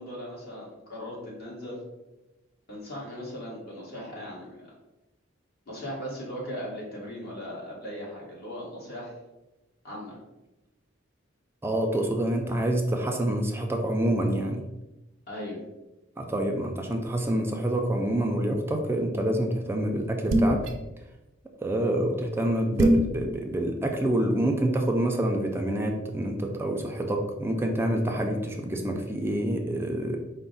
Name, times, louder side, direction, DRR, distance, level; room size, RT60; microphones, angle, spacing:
voice 1, 0.0-1.8 2.7-4.7 5.7-9.1 9.8-10.2 15.3-15.6, equal, 55° left, -4 dB, 1.4 m, -38 dB
voice 2, 11.6-14.6 16.2-20.6 21.6-30.2, right 1 dB, 10° right, 2 dB, 0.4 m, -27 dB
sound 1, 20.3-20.7 22.8-23.1, equal, 80° right, 0.5 m, -20 dB
4.7 x 2.1 x 3.9 m, 1.0 s
head